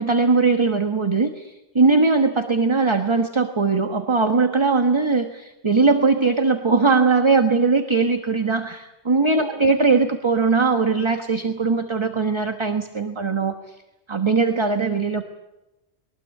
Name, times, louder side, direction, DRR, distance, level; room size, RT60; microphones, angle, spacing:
voice 1, 0.0-13.5 14.1-15.3, right 4 dB, 25° right, 6 dB, 1.3 m, -20 dB
22.0 x 19.5 x 8.5 m, 0.99 s
omnidirectional pair, 1.1 m